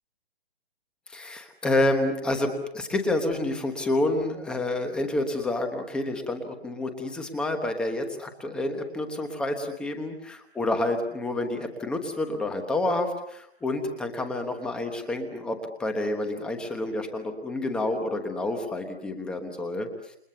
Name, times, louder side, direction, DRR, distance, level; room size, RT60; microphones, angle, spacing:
voice 1, 1.1-19.9, left 2 dB, 5° left, 6 dB, 1.1 m, -29 dB
29.0 x 26.0 x 6.9 m, 0.76 s
hypercardioid pair, 170°, 32 cm